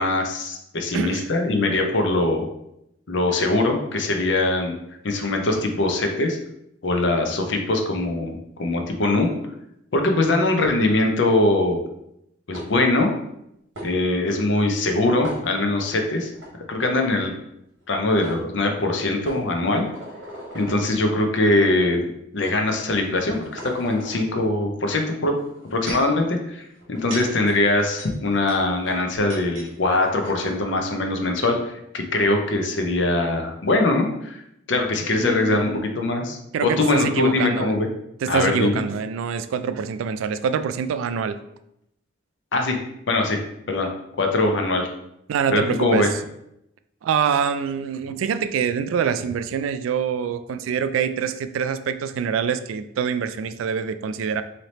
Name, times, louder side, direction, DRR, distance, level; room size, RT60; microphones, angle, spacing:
voice 1, 0.0-2.5 3.1-4.7 5.0-6.4 6.8-9.3 9.9-11.8 12.5-13.1 13.8-16.3 16.7-17.4 17.9-19.8 20.5-25.3 25.7-34.4 34.7-37.9 38.3-38.8 42.5-42.8 43.1-43.4 43.7-43.9 44.2-44.9 45.5-46.1, left 2 dB, 65° left, 3 dB, 0.6 m, -22 dB
voice 2, 0.9-1.3 35.2-35.9 36.5-37.8 38.2-41.4 45.3-46.1 47.0-54.4, right 7 dB, 90° right, 11 dB, 0.3 m, -25 dB
sound 1, 12.5-13.0 13.7-13.9 15.2-15.9 16.3-16.5 17.8-17.9 18.2-18.4 19.2-20.8 21.6-21.8 22.4-22.6 23.1-24.3 25.4-26.1 26.8-29.7 30.0-30.1 30.2-30.6, equal, 70° right, 1.2 m, -38 dB
3.2 x 2.8 x 4.1 m, 0.80 s
head